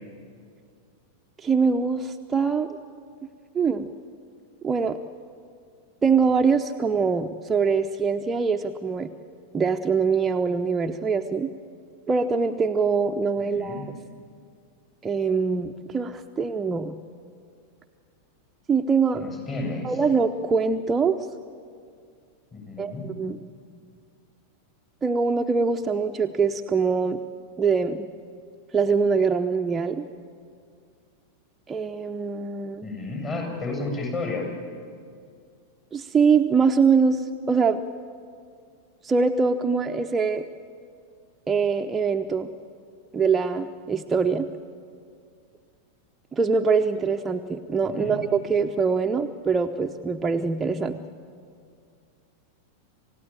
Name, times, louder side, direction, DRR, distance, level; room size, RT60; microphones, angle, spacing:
voice 1, 1.4-2.7 3.5-3.9 4.6-5.0 6.0-9.1 9.5-11.5 12.1-13.9 15.0-17.0 18.7-19.2 19.8-21.2 22.8-23.4 25.0-27.2 27.6-28.1 28.7-30.0 31.7-32.8 35.9-37.8 39.0-40.4 41.5-42.5 43.1-44.5 46.3-51.0, right 5 dB, 15° right, 4 dB, 0.8 m, -23 dB
voice 2, 13.4-13.9 19.1-20.0 22.5-23.1 32.8-34.5 47.8-48.2, left 3 dB, 30° left, 1 dB, 7.5 m, -32 dB
27.5 x 17.0 x 8.9 m, 2.3 s
figure-of-eight pair, 90°, 0 cm